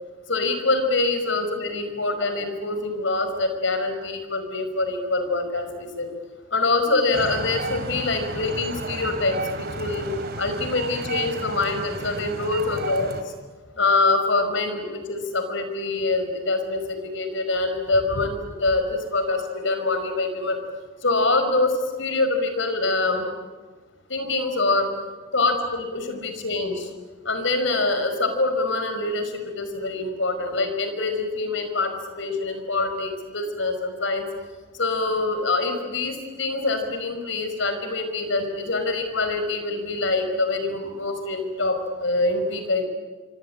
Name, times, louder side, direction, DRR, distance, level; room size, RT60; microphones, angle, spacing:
voice 1, 0.3-6.1 6.5-10.1 10.4-13.1 13.8-20.6 21.0-23.3 24.1-25.0 25.3-26.9 27.3-34.3 34.8-42.9, left 3 dB, 60° left, 8 dB, 5.3 m, -25 dB
sound 1, 7.1-13.2, right 2 dB, 45° right, 2.8 m, -33 dB
26.0 x 25.5 x 8.9 m, 1.4 s
head